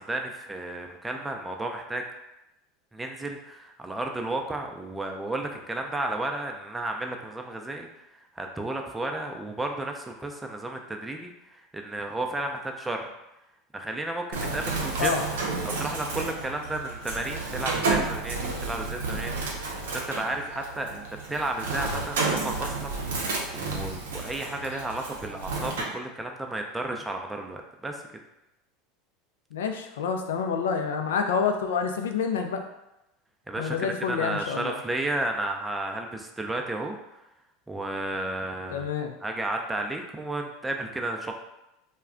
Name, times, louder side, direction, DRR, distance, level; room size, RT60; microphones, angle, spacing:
voice 1, 0.0-2.0 2.9-7.9 8.4-11.3 11.7-13.1 13.7-15.1 15.6-22.9 23.5-28.0 33.5-37.0 37.7-38.9 39.2-41.3, right 2 dB, 10° right, 3 dB, 0.4 m, -33 dB
Bird, 14.3-25.8, right 3 dB, 80° right, 0.5 m, -31 dB
voice 2, 29.5-32.6 33.6-34.8 38.7-39.1, left 6 dB, 80° left, 5 dB, 0.3 m, -28 dB
2.3 x 2.1 x 3.6 m, 0.91 s
hypercardioid pair, 90°, 0 cm